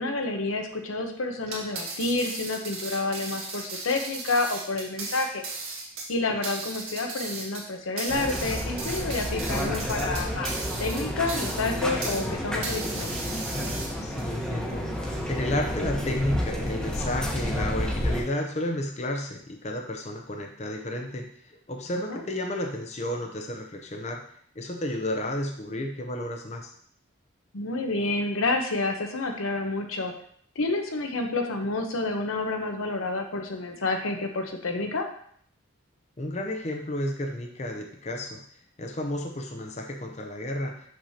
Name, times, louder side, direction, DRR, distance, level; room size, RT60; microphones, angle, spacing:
voice 1, 0.0-5.4 6.1-10.5 10.8-13.1 22.1-22.2 27.5-30.1 30.6-35.1, left 3 dB, 90° left, 4 dB, 0.9 m, -29 dB
sound 1, 1.4-12.3 12.6-14.2, right 3 dB, 80° right, 1.7 m, -36 dB
sound 2, 8.1-18.2, equal, 5° left, 1.0 m, -30 dB
voice 2, 14.0-24.2 24.6-26.7 36.2-38.4 38.8-40.9, left 1 dB, 35° left, 3 dB, 0.6 m, -32 dB
6.5 x 6.0 x 2.8 m, 0.63 s
head